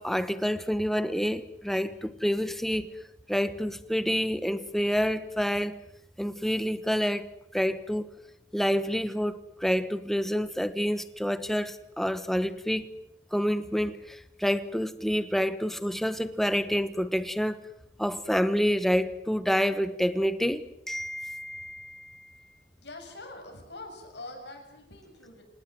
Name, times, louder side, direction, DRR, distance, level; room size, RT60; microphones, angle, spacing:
voice 1, 0.0-2.9 3.3-5.7 6.2-7.3 7.5-8.1 8.5-12.9 13.3-17.6 18.0-22.4, equal, ahead, 13 dB, 1.1 m, -28 dB
voice 2, 22.8-25.4, left 2 dB, 70° left, 3 dB, 7.1 m, -44 dB
26.5 x 19.0 x 7.7 m, 0.81 s
head